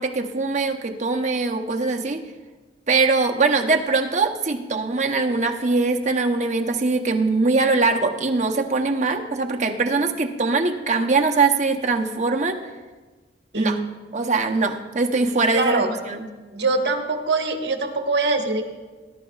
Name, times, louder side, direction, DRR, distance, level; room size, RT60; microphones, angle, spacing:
voice 1, 0.0-2.2 2.9-12.6 13.5-13.8 14.1-16.2, right 3 dB, 40° right, 3 dB, 0.8 m, -22 dB
voice 2, 13.5-13.9 15.5-15.9 16.5-18.7, right 3 dB, 65° right, 3 dB, 1.3 m, -23 dB
19.5 x 11.0 x 2.4 m, 1.3 s
head